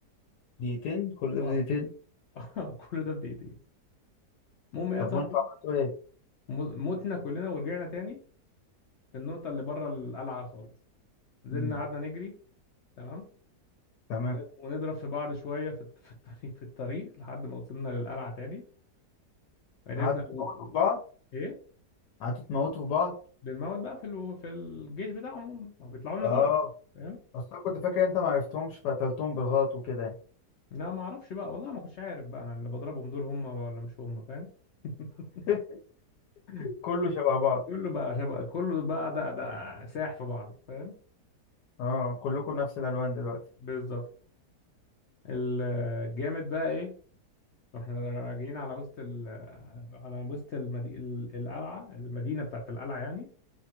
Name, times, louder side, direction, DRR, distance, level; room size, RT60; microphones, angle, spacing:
voice 1, 0.6-1.9 5.0-5.9 11.5-11.7 14.1-14.4 20.0-20.1 20.4-21.0 22.2-23.1 26.2-26.7 27.3-30.1 35.5-35.6 36.6-37.6 41.8-43.4, left 5 dB, 85° left, -1 dB, 1.2 m, -29 dB
voice 2, 2.3-3.5 4.7-5.3 6.5-8.2 9.1-10.7 11.4-12.3 13.0-13.2 14.3-15.8 16.0-16.4 16.8-18.6 19.9-20.7 21.3-21.6 23.4-26.5 27.0-27.2 30.7-34.5 34.8-35.5 36.5-36.7 37.7-40.9 43.6-44.0 45.2-47.0 47.7-53.3, left 3 dB, 65° left, 1 dB, 0.7 m, -35 dB
2.8 x 2.3 x 2.8 m, 0.42 s
omnidirectional pair, 1.7 m